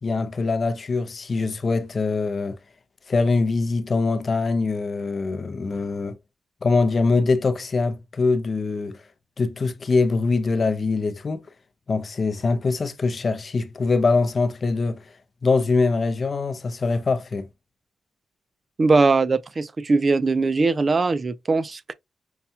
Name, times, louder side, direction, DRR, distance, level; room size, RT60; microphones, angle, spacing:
voice 1, 0.0-2.6 3.1-6.2 6.6-9.0 9.4-11.5 11.9-15.0 15.4-17.5, left 3 dB, 40° left, 0.6 m, -23 dB
voice 2, 18.8-21.9, right 3 dB, 35° right, 0.3 m, -20 dB
5.5 x 2.3 x 2.7 m
cardioid pair, 95°, 0 cm